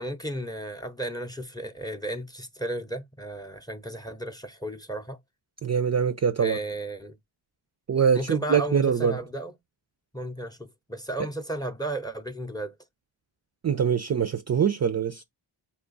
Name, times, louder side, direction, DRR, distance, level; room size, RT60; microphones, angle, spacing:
voice 1, 0.0-5.2 6.4-7.2 8.1-9.5 10.1-12.7, right 1 dB, 10° left, 0.6 m, -34 dB
voice 2, 5.6-6.6 7.9-9.1 13.6-15.2, right 7 dB, 35° right, 0.4 m, -23 dB
4.5 x 2.4 x 3.9 m
cardioid pair, 55°, 50 cm